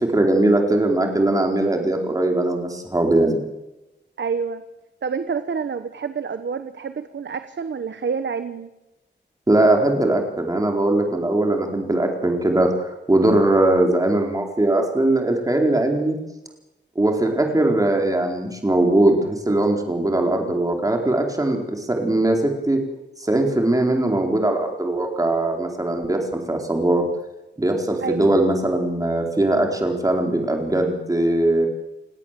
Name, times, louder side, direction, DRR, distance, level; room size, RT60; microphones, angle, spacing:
voice 1, 0.1-3.4 9.5-16.2 17.0-22.8 23.2-27.0 27.6-31.7, right 1 dB, 20° right, 2 dB, 4.4 m, -20 dB
voice 2, 4.2-4.6 5.0-8.7 28.0-28.3, right 5 dB, 70° right, 10 dB, 1.2 m, -28 dB
30.0 x 17.5 x 7.7 m, 0.98 s
wide cardioid pair, 145°, 19 cm